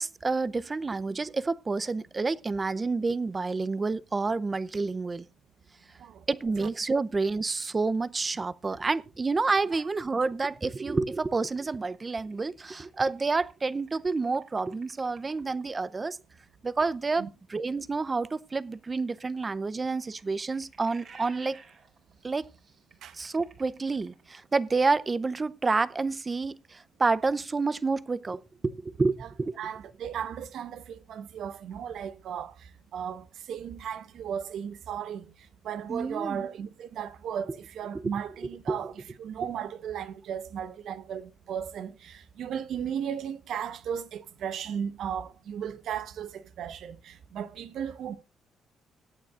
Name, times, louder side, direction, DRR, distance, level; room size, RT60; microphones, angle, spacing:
voice 1, 0.0-5.3 6.3-16.2 16.6-21.6 22.2-22.4 23.2-29.6 35.9-36.4 37.9-38.1 38.7-38.8, right 3 dB, 30° right, 0.6 m, -29 dB
sound 1, 11.5-15.6 18.5-24.5, right 5 dB, 55° right, 3.7 m, -55 dB
voice 2, 29.6-32.5 32.9-35.3 35.6-48.2, right 8 dB, 70° right, 1.0 m, -35 dB
21.5 x 9.0 x 2.5 m
cardioid pair, 90°, 0 cm